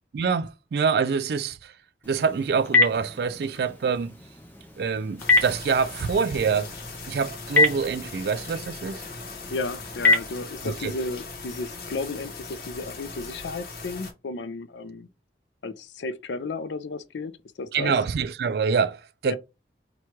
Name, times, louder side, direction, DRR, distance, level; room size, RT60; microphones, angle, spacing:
voice 1, 0.1-1.7 2.1-4.1 4.8-6.7 7.1-9.0 10.6-10.9 17.7-19.4, right 5 dB, 60° right, 0.3 m, -25 dB
Telephone, 2.0-10.9, left 3 dB, 10° left, 0.4 m, -27 dB
sound 1, 5.2-14.1, left 3 dB, 55° left, 0.8 m, -39 dB
voice 2, 9.5-15.1 15.6-17.3 17.6-17.9 19.3-19.4, left 3 dB, 85° left, 0.4 m, -33 dB
3.0 x 2.3 x 4.2 m
head